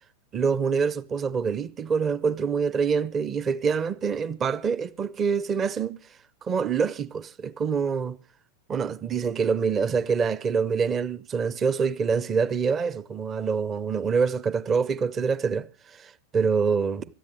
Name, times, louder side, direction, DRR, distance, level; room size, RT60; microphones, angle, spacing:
voice 1, 0.3-6.0 6.4-8.2 8.7-15.7 16.0-17.0, right 5 dB, 25° right, 0.7 m, -25 dB
25.5 x 13.5 x 2.9 m
figure-of-eight pair, 90°, 0 cm